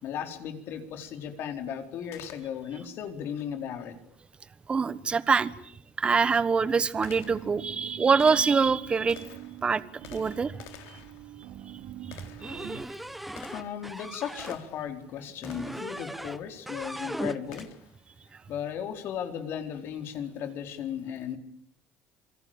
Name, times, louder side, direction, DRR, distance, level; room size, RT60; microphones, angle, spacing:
voice 1, 0.0-4.0 13.5-17.7 18.5-21.4, left 8 dB, 60° left, 7 dB, 4.3 m, -36 dB
Gunshot gunfire, 2.1-2.9 5.3-5.4 6.1-14.9 15.4-15.9 17.5-18.0, left 10 dB, 85° left, 3.8 m, -51 dB
voice 2, 4.7-5.5 6.0-9.2 9.6-9.8 10.1-10.5 12.4-12.8, right 5 dB, 25° right, 16 dB, 1.3 m, -24 dB
sound 1, 7.2-12.8, right 13 dB, 80° right, 2.7 m, -45 dB
sound 2, 12.4-14.6 15.4-16.4 16.7-17.7, right 1 dB, ahead, 1.1 m, -38 dB
27.0 x 24.0 x 8.9 m, 0.65 s
cardioid pair, 140°, 5 cm